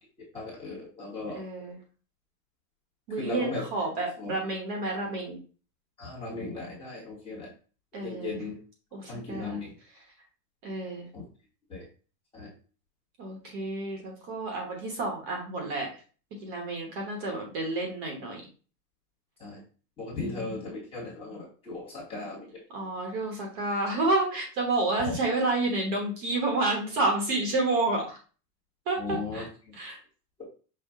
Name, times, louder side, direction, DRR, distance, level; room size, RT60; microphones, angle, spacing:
voice 1, 0.3-1.4 3.2-3.6 4.2-4.4 6.0-7.5 8.0-8.5 9.1-9.7 11.1-11.2 11.7-11.8 12.3-12.5 19.4-19.6 20.0-22.5 25.0-25.2 29.0-29.8 30.4-30.5, left 3 dB, 10° left, -6 dB, 1.2 m, -37 dB
voice 2, 1.3-1.8 3.1-5.4 7.9-8.4 8.9-9.6 10.6-11.0 13.2-15.9 16.4-18.4 20.2-20.6 22.7-28.2 28.9-29.0 29.3-29.4 29.7-30.0, right 2 dB, 30° right, 1 dB, 1.1 m, -30 dB
5.7 x 2.3 x 3.5 m, 0.37 s
supercardioid pair, 175°, 45 cm